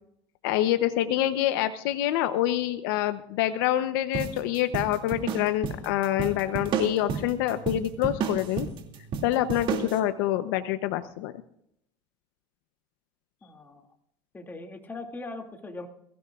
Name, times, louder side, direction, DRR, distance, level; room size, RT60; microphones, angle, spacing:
voice 1, 0.4-8.7 9.2-11.3, left 13 dB, 80° left, 10 dB, 0.8 m, -26 dB
sound 1, 4.1-10.0, right 6 dB, 50° right, 2.5 m, -32 dB
voice 2, 13.4-13.8 14.3-15.9, left 2 dB, 15° left, 3 dB, 2.4 m, -40 dB
22.0 x 15.5 x 2.5 m, 0.73 s
supercardioid pair, 120°, 11 cm